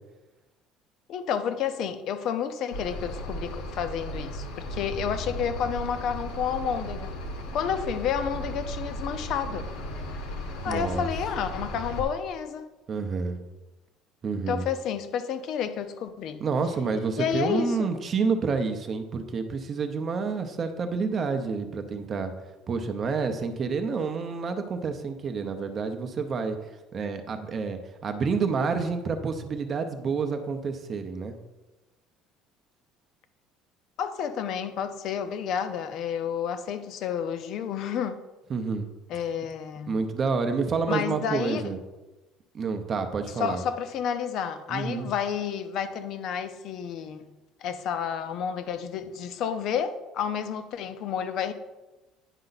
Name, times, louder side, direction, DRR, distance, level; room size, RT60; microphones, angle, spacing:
voice 1, 1.1-7.1 7.5-9.7 10.6-12.7 14.5-16.4 17.2-17.9 34.0-38.2 39.1-40.0 40.9-41.6 43.4-47.3 47.6-51.5, left 8 dB, 45° left, 11 dB, 0.6 m, -30 dB
sound 1, 2.7-12.0, equal, 85° left, 1.5 m, -36 dB
voice 2, 10.7-11.1 12.9-13.4 14.2-14.6 16.4-22.3 22.7-26.6 26.9-31.4 38.5-38.9 39.9-41.8 42.5-43.6 44.7-45.1, right 5 dB, 25° right, 7 dB, 0.7 m, -29 dB
9.9 x 5.5 x 4.0 m, 1.1 s
cardioid pair, 180°, 0 cm